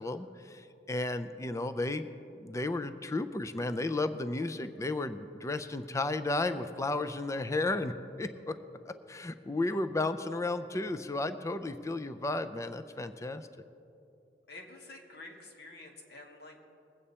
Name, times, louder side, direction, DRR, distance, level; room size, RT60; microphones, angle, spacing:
voice 1, 0.0-2.1 2.4-8.6 8.8-13.5, left 2 dB, 15° left, 10 dB, 0.4 m, -33 dB
voice 2, 14.5-16.7, left 2 dB, 65° left, 1 dB, 1.9 m, -49 dB
21.5 x 8.6 x 4.3 m, 2.6 s
head